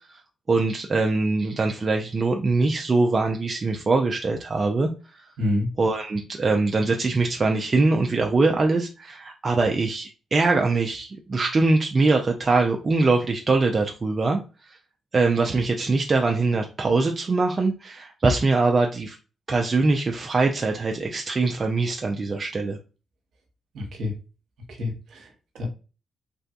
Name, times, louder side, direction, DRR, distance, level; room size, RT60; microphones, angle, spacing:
voice 1, 0.5-5.3 5.8-14.4 15.1-19.2 19.5-22.8, right 3 dB, 40° right, 2 dB, 0.5 m, -22 dB
voice 2, 23.7-24.1 24.7-25.3 25.5-25.7, left 2 dB, 65° right, 3 dB, 1.0 m, -27 dB
3.3 x 2.6 x 2.3 m, 0.32 s
hypercardioid pair, 50°, 0 cm